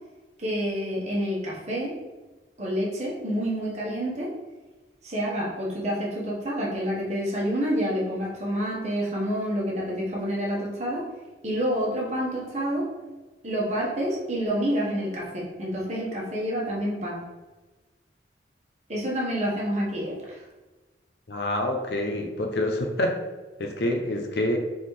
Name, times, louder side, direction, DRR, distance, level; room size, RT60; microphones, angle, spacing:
voice 1, 0.4-1.9 2.6-4.3 5.0-11.0 11.4-12.9 13.4-17.2 18.9-20.2, equal, 40° right, -4 dB, 1.2 m, -28 dB
voice 2, 21.3-23.1 23.6-24.6, left 1 dB, 65° left, 3 dB, 0.6 m, -27 dB
4.1 x 3.7 x 3.2 m, 1.2 s
head